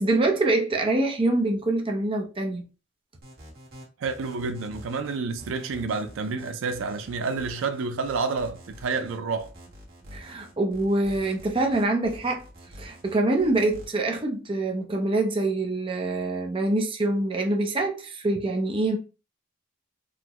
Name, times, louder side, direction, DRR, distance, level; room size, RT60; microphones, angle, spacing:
voice 1, 0.0-2.7 10.1-12.4 12.8-19.0, right 2 dB, 25° right, 0.5 m, -25 dB
sound 1, 3.2-13.9, equal, 50° right, 1.3 m, -46 dB
voice 2, 4.0-9.5, right 4 dB, 75° right, 0.4 m, -29 dB
3.7 x 2.1 x 2.9 m
head